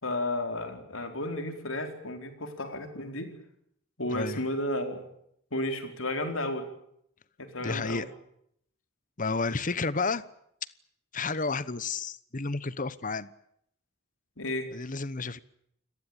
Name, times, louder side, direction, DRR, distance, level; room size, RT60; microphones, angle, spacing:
voice 1, 0.0-3.3 4.0-5.0 5.5-6.6 7.4-8.1 14.4-14.7, left 1 dB, 75° left, 6 dB, 4.4 m, -33 dB
voice 2, 4.1-4.4 7.6-8.1 9.2-10.2 11.1-13.3 14.7-15.4, left 4 dB, 40° left, 17 dB, 1.0 m, -31 dB
29.0 x 18.5 x 8.9 m, 0.73 s
head